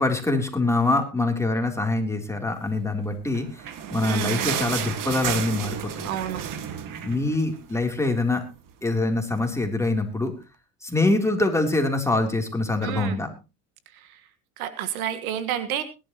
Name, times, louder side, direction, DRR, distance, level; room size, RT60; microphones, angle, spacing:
voice 1, 0.0-3.5 3.9-6.1 7.0-8.4 8.8-10.3 10.8-13.3, left 2 dB, 5° left, 3 dB, 3.4 m, -24 dB
sound 1, 3.2-8.0 8.3-8.4 8.7-8.9 9.5-9.6, right 9 dB, 50° right, 2.0 m, -31 dB
voice 2, 4.0-4.4 6.0-6.4 12.8-13.2 14.6-15.8, right 10 dB, 90° right, 11 dB, 1.7 m, -29 dB
21.0 x 11.5 x 3.0 m, 0.29 s
supercardioid pair, 90°, 42 cm